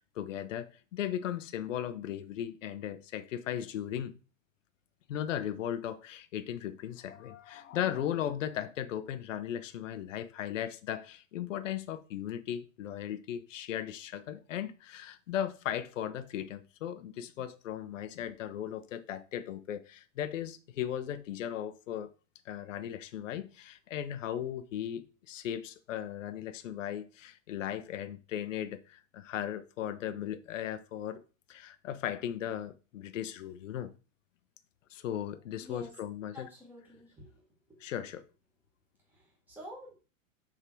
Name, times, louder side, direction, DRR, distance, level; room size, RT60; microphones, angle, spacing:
voice 1, 0.1-4.1 5.1-22.1 22.5-31.2 31.5-33.9 34.9-36.5 37.8-38.2, left 10 dB, 65° left, 0.8 m, -37 dB
voice 2, 36.3-37.3 37.7-37.9 39.1-39.9, left 1 dB, 5° right, 1.6 m, -48 dB
6.8 x 3.8 x 4.5 m
supercardioid pair, 175°, 41 cm